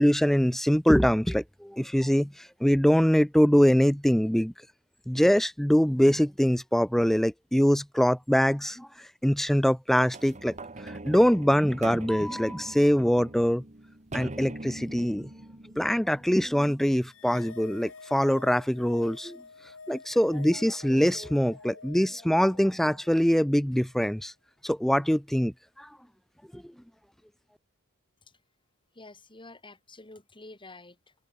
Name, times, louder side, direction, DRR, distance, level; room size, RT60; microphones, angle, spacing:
voice 1, 0.0-4.5 5.1-8.9 9.2-10.5 10.8-13.6 14.1-15.3 15.8-19.4 19.9-24.3 24.6-25.9 26.5-26.7, equal, ahead, 0.4 m, -23 dB
sound 1, 10.1-16.9 17.5-17.6, right 2 dB, 35° right, 2.3 m, -42 dB
sound 2, 17.0-23.6, left 4 dB, 65° left, 2.6 m, -48 dB
voice 2, 28.9-31.1, left 2 dB, 25° left, 6.0 m, -49 dB
open air
head